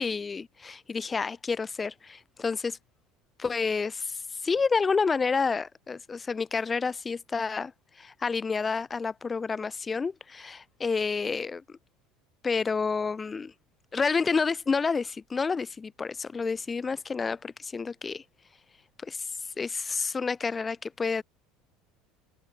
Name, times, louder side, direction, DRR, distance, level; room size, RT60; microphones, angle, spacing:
voice 1, 0.0-2.8 3.4-7.7 8.0-11.8 12.4-13.5 13.9-18.2 19.0-19.3 19.6-21.2, left 5 dB, 20° left, 0.6 m, -29 dB
supercardioid pair, 120°, 0 cm